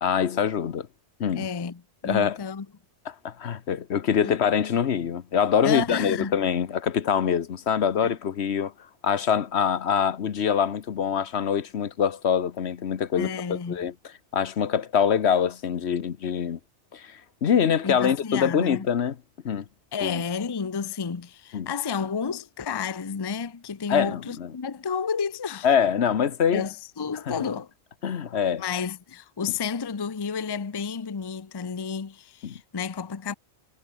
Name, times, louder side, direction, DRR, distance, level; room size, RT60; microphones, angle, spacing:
voice 1, 0.0-0.9 1.2-1.5 2.0-2.4 3.2-8.7 9.0-13.9 14.3-16.6 16.9-19.2 19.4-19.6 20.0-20.2 21.5-21.7 23.9-24.5 25.6-26.6 27.3-27.4 28.0-28.6 32.4-32.6, left 8 dB, 70° left, 1.2 m, -24 dB
voice 2, 1.3-2.7 4.2-4.3 5.6-6.3 8.0-8.1 13.2-13.9 17.8-18.9 19.9-25.7 26.5-27.7 28.6-33.3, left 6 dB, 25° left, 0.6 m, -31 dB
omnidirectional pair, 1.2 m